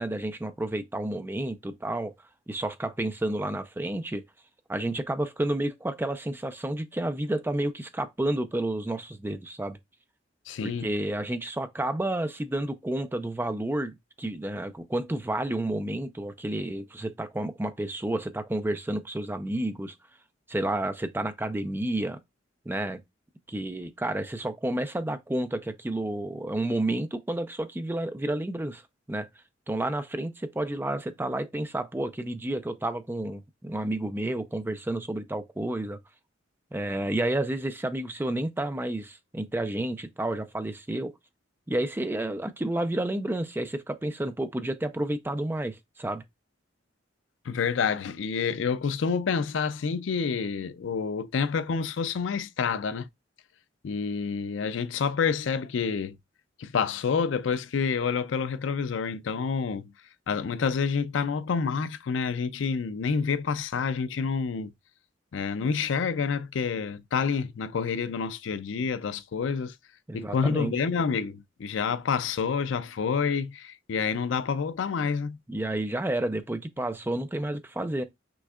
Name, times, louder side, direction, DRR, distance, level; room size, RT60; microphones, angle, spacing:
voice 1, 0.0-2.1 2.5-4.2 4.7-9.8 10.6-19.9 20.5-22.2 22.7-23.0 23.5-28.8 29.1-29.3 29.7-36.0 36.7-41.1 41.7-46.2 70.1-70.7 75.5-78.0, right 1 dB, 10° right, 0.4 m, -30 dB
voice 2, 10.5-10.9 47.5-53.1 53.8-56.2 56.6-59.9 60.3-64.7 65.3-69.7 70.1-75.4, left 5 dB, 75° left, 0.4 m, -28 dB
6.2 x 3.3 x 2.3 m
head